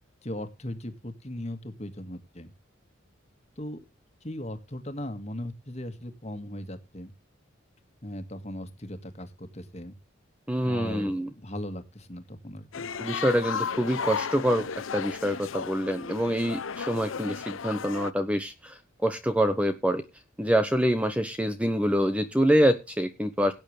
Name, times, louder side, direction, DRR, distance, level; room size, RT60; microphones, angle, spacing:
voice 1, 0.2-2.5 3.6-3.8 4.2-7.1 8.0-10.0 10.6-12.9, left 1 dB, 35° left, 8 dB, 1.9 m, -38 dB
voice 2, 10.5-11.3 13.0-14.7 14.9-20.0 20.4-23.5, equal, 5° right, 8 dB, 1.0 m, -26 dB
sound 1, 12.7-18.1, left 6 dB, 90° left, 0.7 m, -34 dB
17.5 x 9.1 x 3.3 m, 0.27 s
head